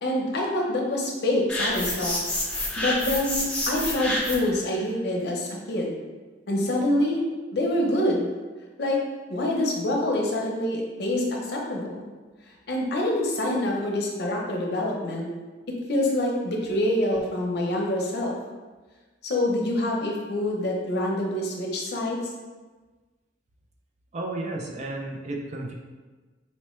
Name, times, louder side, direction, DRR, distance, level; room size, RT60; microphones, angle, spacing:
voice 1, 0.0-2.2 2.8-5.9 6.5-7.2 7.5-8.3 8.8-9.0 9.3-12.0 12.7-15.3 15.9-18.4 19.2-22.2, left 1 dB, 65° left, -1 dB, 0.7 m, -26 dB
sound 1, 1.5-4.6, left 1 dB, 5° left, 0.6 m, -28 dB
voice 2, 24.1-25.7, right 2 dB, 40° right, 0 dB, 0.4 m, -32 dB
4.2 x 2.1 x 3.0 m, 1.3 s
head